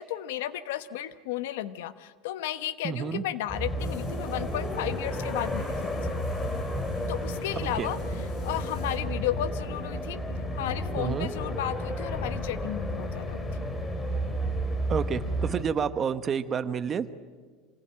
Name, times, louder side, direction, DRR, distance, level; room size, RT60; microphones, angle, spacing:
voice 1, 0.0-6.1 7.1-8.0 8.4-10.2 10.5-13.4, left 13 dB, 85° left, 12 dB, 1.2 m, -33 dB
voice 2, 2.8-3.2 7.8-7.9 11.0-11.3 14.9-17.1, right 7 dB, 25° right, 12 dB, 1.1 m, -29 dB
sound 1, 3.5-15.6, equal, 15° left, 2.7 m, -32 dB
sound 2, 3.8-9.0, left 3 dB, 35° left, 5.6 m, -48 dB
27.0 x 20.5 x 8.9 m, 1.5 s
supercardioid pair, 145°, 0 cm